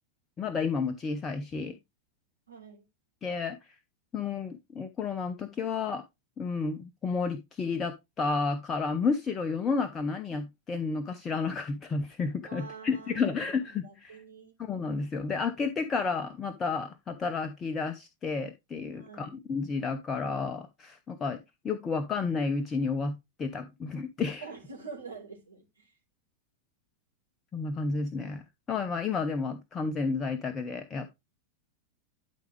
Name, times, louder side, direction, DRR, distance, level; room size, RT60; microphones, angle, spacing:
voice 1, 0.4-1.7 3.2-3.8 4.1-6.0 6.4-14.2 14.6-21.4 21.6-24.4 27.5-31.1, left 4 dB, 20° left, 0.8 m, -31 dB
voice 2, 2.5-2.8 12.4-14.5 18.9-19.4 24.4-25.9, right 5 dB, 75° right, 3.3 m, -46 dB
12.0 x 4.9 x 3.2 m
figure-of-eight pair, 90°, 0 cm